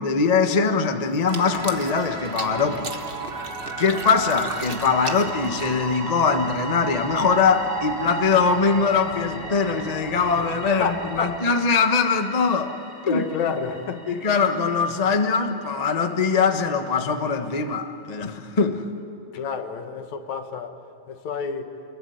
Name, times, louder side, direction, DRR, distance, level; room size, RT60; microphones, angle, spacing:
voice 1, 0.0-2.9 3.8-12.7 13.0-13.2 14.1-18.8, left 5 dB, 45° left, 5 dB, 0.5 m, -22 dB
sound 1, 1.1-6.0, right 3 dB, 35° right, 0.9 m, -37 dB
sound 2, 1.3-11.4, right 4 dB, 70° right, 4.2 m, -34 dB
sound 3, 4.1-16.9, right 1 dB, 15° left, 2.4 m, -42 dB
voice 2, 10.8-11.4 13.0-14.0 19.3-20.8 21.1-21.7, left 6 dB, 75° left, 6 dB, 2.8 m, -30 dB
28.0 x 22.0 x 9.6 m, 2.6 s
omnidirectional pair, 3.3 m